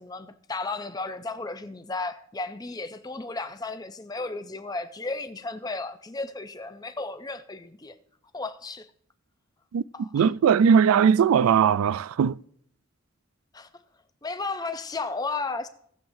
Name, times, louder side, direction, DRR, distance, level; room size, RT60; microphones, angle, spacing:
voice 1, 0.0-8.0 8.3-8.9 9.9-10.3 13.5-13.7 14.2-15.7, left 3 dB, 15° left, 0.5 m, -34 dB
voice 2, 9.7-12.4, right 7 dB, 80° right, 0.3 m, -20 dB
18.5 x 7.1 x 2.7 m
head